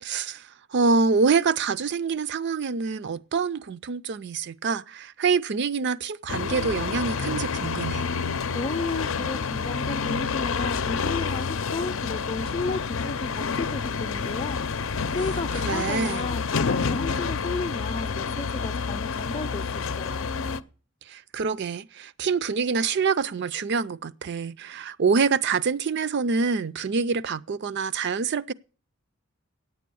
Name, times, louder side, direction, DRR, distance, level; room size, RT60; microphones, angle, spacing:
voice 1, 0.0-8.1 15.5-16.2 21.1-28.5, right 5 dB, 60° right, 0.5 m, -26 dB
sound 1, 6.3-20.6, left 5 dB, 70° left, 0.6 m, -28 dB
voice 2, 8.5-14.6 15.1-20.3, left 3 dB, 30° left, 0.6 m, -33 dB
9.9 x 8.5 x 6.9 m
head